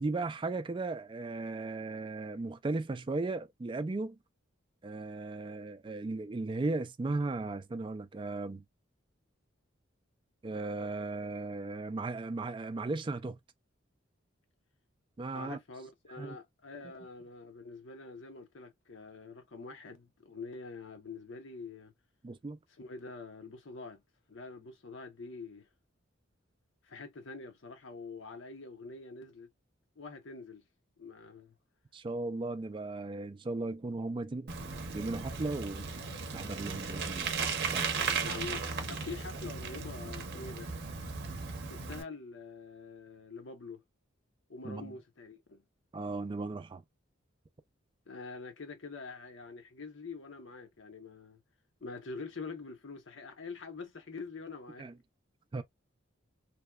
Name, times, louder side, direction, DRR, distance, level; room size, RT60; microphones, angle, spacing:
voice 1, 0.0-4.2 4.8-8.6 10.4-13.4 15.2-15.6 16.2-16.4 22.2-22.6 31.9-34.5 34.9-35.9 36.3-37.3 37.7-37.9 41.2-41.3 44.6-44.9 45.9-46.8 54.8-54.9 55.5-55.6, right 3 dB, 25° right, 0.3 m, -36 dB
voice 2, 15.3-21.9 22.8-24.0 24.3-25.7 26.8-29.5 30.0-30.6 31.0-31.5 38.2-40.7 41.6-43.8 44.5-45.6 48.1-51.4 51.8-54.9, left 4 dB, 70° left, 0.8 m, -45 dB
Bicycle, 34.5-42.0, right 5 dB, 55° right, 0.6 m, -36 dB
2.8 x 2.2 x 2.2 m
head